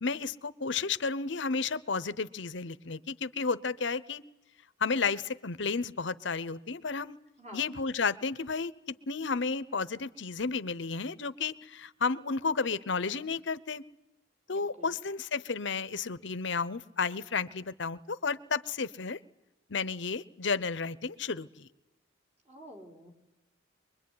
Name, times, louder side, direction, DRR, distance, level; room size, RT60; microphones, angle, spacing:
voice 1, 0.0-4.2 4.8-7.2 7.5-13.8 14.5-19.2 19.7-21.7, left 4 dB, 65° left, 16 dB, 0.9 m, -32 dB
voice 2, 14.5-15.0 22.5-23.3, equal, 35° right, 2 dB, 4.0 m, -50 dB
24.0 x 22.0 x 9.6 m, 0.96 s
head